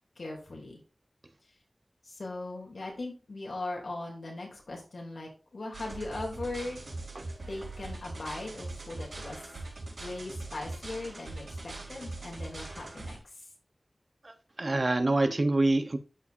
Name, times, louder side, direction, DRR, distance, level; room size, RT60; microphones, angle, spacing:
voice 1, 0.2-0.8 2.0-6.8 7.5-9.4 10.0-13.5, left 2 dB, 85° left, 2.9 m, -39 dB
sound 1, 5.7-13.2, right 2 dB, 90° right, 4.5 m, -41 dB
voice 2, 14.2-16.0, right 2 dB, 50° right, 0.9 m, -26 dB
13.0 x 5.0 x 2.6 m
wide cardioid pair, 55°, 0 cm